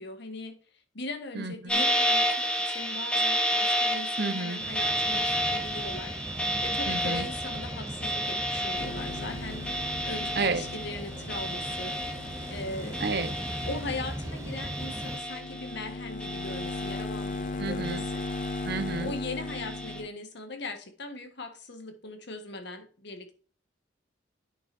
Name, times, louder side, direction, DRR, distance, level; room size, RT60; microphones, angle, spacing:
voice 1, 0.0-9.6 10.0-12.0 12.5-13.0 13.7-18.2 18.9-23.3, left 2 dB, 65° left, 1.6 m, -40 dB
voice 2, 1.3-1.9 4.2-4.6 6.9-7.3 10.4-10.6 13.0-13.3 17.6-18.0 18.7-19.1, right 3 dB, 60° right, 1.0 m, -31 dB
sound 1, 1.7-14.3 14.6-15.8 16.2-17.4 17.8-18.9 19.5-20.0, equal, 5° left, 1.4 m, -31 dB
sound 2, 4.6-15.2, right 1 dB, 15° right, 0.8 m, -39 dB
sound 3, 8.8-20.1, left 3 dB, 45° left, 0.5 m, -38 dB
8.7 x 7.1 x 2.7 m
head